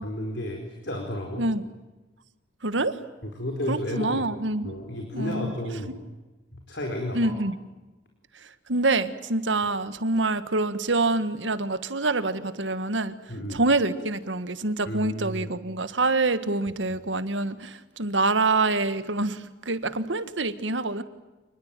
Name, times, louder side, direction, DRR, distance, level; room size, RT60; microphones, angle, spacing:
voice 1, 0.0-1.5 3.2-4.3 4.6-5.9 6.7-7.3 13.3-13.6 14.9-15.5, left 1 dB, 65° left, 2 dB, 4.6 m, -32 dB
voice 2, 2.6-3.0 3.7-4.8 5.1-5.5 7.1-7.6 8.7-13.2 13.5-21.0, right 2 dB, 80° right, 12 dB, 1.7 m, -26 dB
28.5 x 21.0 x 9.2 m, 1.1 s
head